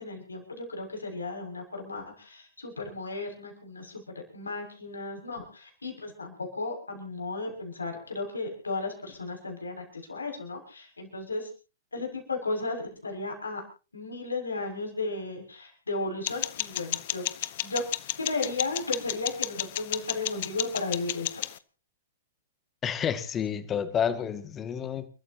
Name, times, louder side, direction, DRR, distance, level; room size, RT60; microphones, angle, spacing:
voice 1, 0.0-11.5 11.9-13.6 13.9-17.8 18.2-21.4, left 3 dB, 80° left, 2 dB, 6.7 m, -35 dB
sound 1, 16.3-21.6, left 14 dB, 50° left, 0.9 m, -33 dB
voice 2, 22.8-25.1, left 8 dB, 20° left, 10 dB, 2.1 m, -29 dB
30.0 x 14.0 x 2.9 m, 0.34 s
figure-of-eight pair, 105°, 0 cm